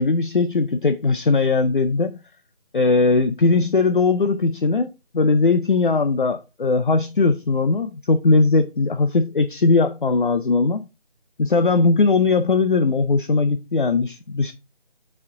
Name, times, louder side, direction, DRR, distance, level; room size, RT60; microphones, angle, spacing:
voice 1, 0.0-2.2 2.7-4.9 5.1-10.9 11.4-14.5, left 3 dB, 55° left, 0.5 m, -19 dB
6.9 x 4.3 x 3.7 m
figure-of-eight pair, 170°, 31 cm